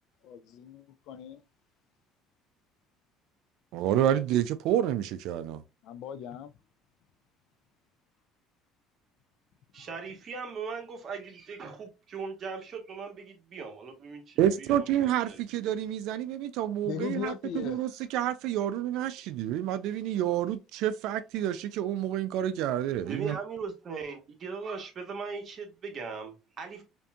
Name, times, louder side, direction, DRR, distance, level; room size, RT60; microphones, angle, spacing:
voice 1, 0.2-1.4 5.8-6.5 16.8-17.9, left 9 dB, 65° left, 0.4 m, -38 dB
voice 2, 3.7-5.6 14.4-23.4, right 11 dB, 75° right, 0.3 m, -29 dB
voice 3, 9.7-15.7 23.0-26.8, right 5 dB, 40° right, 1.2 m, -39 dB
5.2 x 2.6 x 2.3 m
cardioid pair, 110°, 0 cm